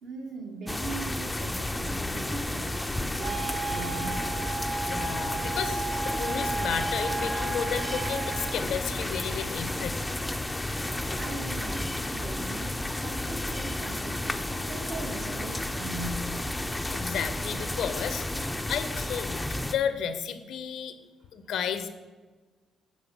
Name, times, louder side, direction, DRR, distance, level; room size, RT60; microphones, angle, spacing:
voice 1, 0.0-4.3 11.1-16.3, right 2 dB, 70° right, 2 dB, 1.3 m, -40 dB
sound 1, 0.7-19.8, left 1 dB, 10° left, 0.4 m, -32 dB
Wind instrument woodwind instrument, 3.2-8.6, right 3 dB, 35° right, 1.0 m, -34 dB
voice 2, 4.8-10.0 16.9-20.9 21.3-21.9, left 8 dB, 75° left, 10 dB, 0.6 m, -33 dB
7.5 x 4.2 x 5.3 m, 1.3 s
cardioid pair, 90°, 0 cm